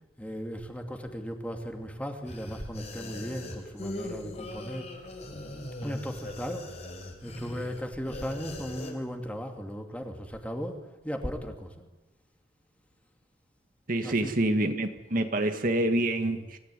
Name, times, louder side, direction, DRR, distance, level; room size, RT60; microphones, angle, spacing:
voice 1, 0.2-4.9 5.8-6.7 7.2-11.7 14.0-14.3, equal, 10° left, 4 dB, 2.7 m, -36 dB
sound 1, 2.2-8.9, left 1 dB, 40° left, 5.2 m, -40 dB
voice 2, 13.9-16.6, right 1 dB, 50° right, 6 dB, 1.9 m, -27 dB
26.5 x 17.5 x 9.8 m, 1.1 s
head